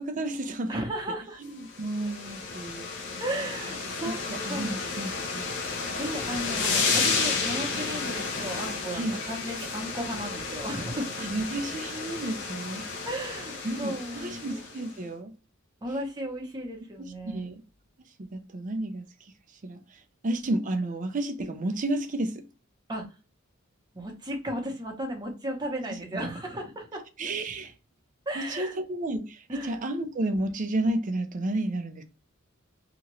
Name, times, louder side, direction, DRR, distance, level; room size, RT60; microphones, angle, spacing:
voice 1, 0.0-0.8 1.4-2.9 4.1-5.5 8.9-9.2 11.2-12.9 13.6-15.3 17.0-17.6 18.2-19.3 19.6-22.5 25.9-26.2 27.2-27.7 28.3-32.0, right 1 dB, 40° right, 0.5 m, -32 dB
voice 2, 0.7-1.4 3.2-4.2 4.5-4.7 6.0-11.1 13.1-14.6 15.8-17.5 22.9-23.1 23.9-27.0 28.3-28.8 29.5-29.8, right 1 dB, 20° right, 0.9 m, -35 dB
sound 1, 1.6-14.9, left 4 dB, 60° left, 0.7 m, -32 dB
2.9 x 2.4 x 2.9 m
head